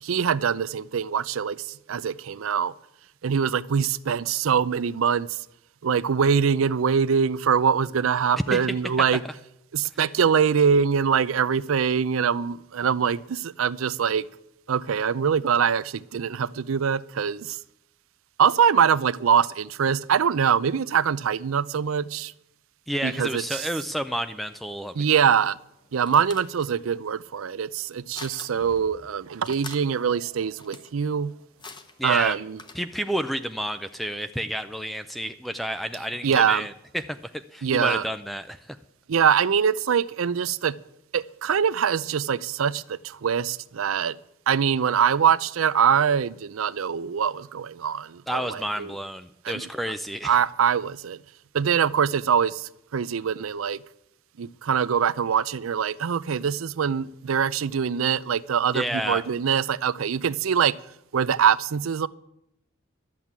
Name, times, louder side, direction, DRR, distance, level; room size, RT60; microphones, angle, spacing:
voice 1, 0.0-2.7 3.2-5.4 5.8-9.2 9.7-14.2 14.7-17.6 18.4-22.3 23.0-23.7 25.0-25.6 25.9-31.3 32.0-32.6 36.2-36.7 37.6-38.0 39.1-40.7 41.1-44.2 44.5-48.9 49.4-49.7 50.2-51.2 51.5-53.8 54.4-60.8 61.1-62.1, right 7 dB, 80° right, 0.5 m, -23 dB
voice 2, 8.4-9.1 22.9-25.0 32.0-32.4 32.7-38.8 48.3-50.4 58.7-59.2, equal, ahead, 0.4 m, -30 dB
sound 1, 25.5-33.2, left 4 dB, 20° left, 0.9 m, -46 dB
12.0 x 7.4 x 9.5 m
head